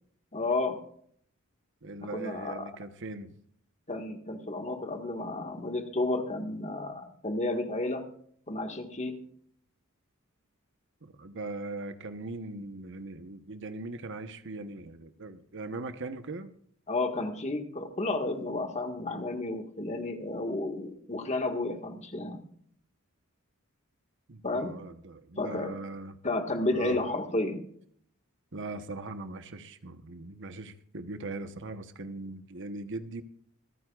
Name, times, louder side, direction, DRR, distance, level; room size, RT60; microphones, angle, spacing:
voice 1, 0.3-0.8 2.1-2.7 3.9-8.1 8.5-9.2 16.9-22.4 24.4-24.7 25.4-25.8 26.2-27.6, left 2 dB, 30° left, 5 dB, 1.8 m, -32 dB
voice 2, 1.8-3.3 11.0-16.5 24.3-26.2 26.7-27.0 28.5-33.2, right 2 dB, 60° right, 9 dB, 1.1 m, -40 dB
26.5 x 9.5 x 2.5 m, 0.62 s
head